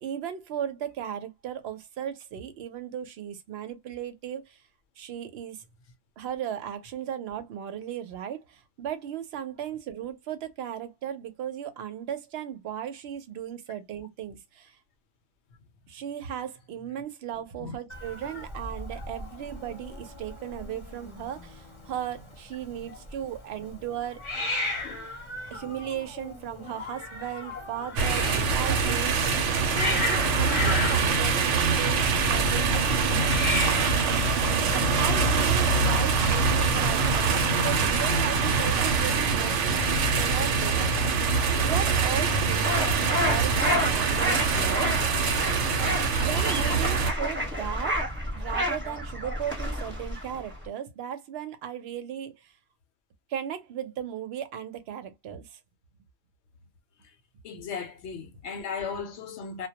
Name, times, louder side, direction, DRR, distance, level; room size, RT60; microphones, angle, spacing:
voice 1, 0.0-4.6 5.0-5.6 6.2-14.8 15.9-24.4 25.5-29.5 29.7-34.2 35.0-41.1 41.6-45.2 46.2-52.5 53.3-55.6, right 9 dB, 65° right, 0.8 m, -36 dB
Hiss, 17.9-35.2, left 2 dB, 30° left, 0.7 m, -36 dB
sound 1, 28.0-47.1, right 4 dB, 90° right, 0.9 m, -24 dB
sound 2, 42.6-50.7, equal, 10° right, 0.8 m, -30 dB
voice 2, 57.4-59.7, left 5 dB, 70° left, 0.8 m, -37 dB
2.2 x 2.1 x 2.8 m
omnidirectional pair, 1.2 m